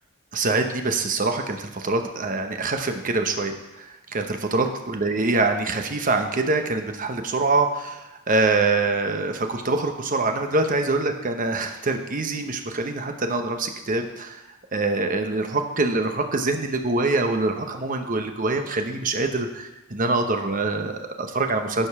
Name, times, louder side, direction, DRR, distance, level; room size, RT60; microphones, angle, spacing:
voice 1, 0.3-14.4 14.7-21.9, right 3 dB, 40° right, 5 dB, 0.9 m, -24 dB
11.5 x 5.3 x 6.0 m, 1.0 s
head